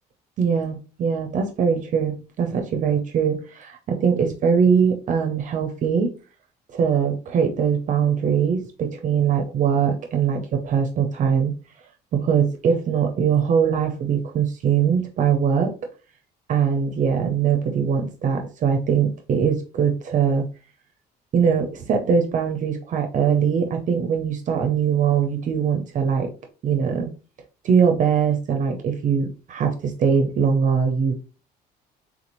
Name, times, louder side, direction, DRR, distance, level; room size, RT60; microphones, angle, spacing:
voice 1, 0.4-6.1 6.7-11.5 12.1-15.7 16.5-20.4 21.3-26.3 26.6-27.1 27.6-31.2, right 7 dB, 50° right, 4 dB, 0.5 m, -21 dB
3.6 x 2.5 x 3.0 m, 0.34 s
cardioid pair, 110°, 17 cm